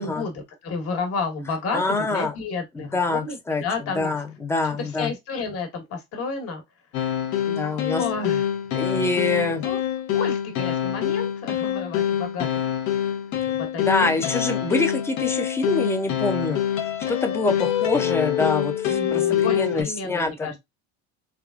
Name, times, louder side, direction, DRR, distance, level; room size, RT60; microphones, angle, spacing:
voice 1, 0.0-4.1 4.8-6.6 7.9-8.5 9.5-9.8 10.1-12.5 12.8-13.2 13.5-14.3 18.9-20.5, left 4 dB, 50° left, 1.3 m, -31 dB
voice 2, 1.7-2.3 2.7-3.6 3.9-5.1 7.5-8.0 8.8-9.6 13.5-13.6 13.8-16.8 17.1-20.6, left 3 dB, 10° left, 0.4 m, -25 dB
sound 1, 6.9-19.8, left 10 dB, 65° left, 0.7 m, -25 dB
3.5 x 3.3 x 2.4 m
cardioid pair, 145°, 31 cm